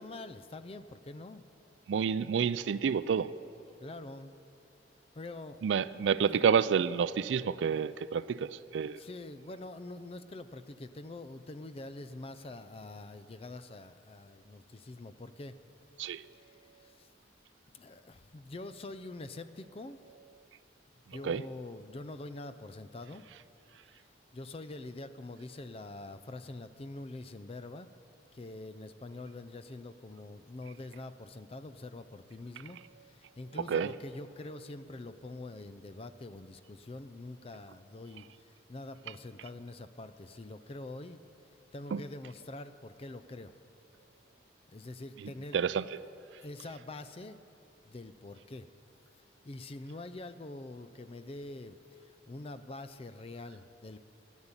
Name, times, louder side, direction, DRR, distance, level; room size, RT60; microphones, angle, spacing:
voice 1, 0.0-1.4 3.8-4.3 5.2-5.7 6.3-6.4 8.8-15.6 16.3-17.1 17.7-20.0 21.1-23.2 24.3-27.9 28.3-41.2 41.7-43.5 44.7-45.6 46.4-47.4 47.8-48.7 49.4-54.0, left 2 dB, 30° left, 12 dB, 0.5 m, -45 dB
voice 2, 1.9-3.3 5.6-9.0 16.0-16.2 21.2-21.4 33.7-33.9 41.9-42.0 45.5-45.8, right 7 dB, 80° right, 17 dB, 0.4 m, -29 dB
13.5 x 7.2 x 9.7 m, 2.8 s
head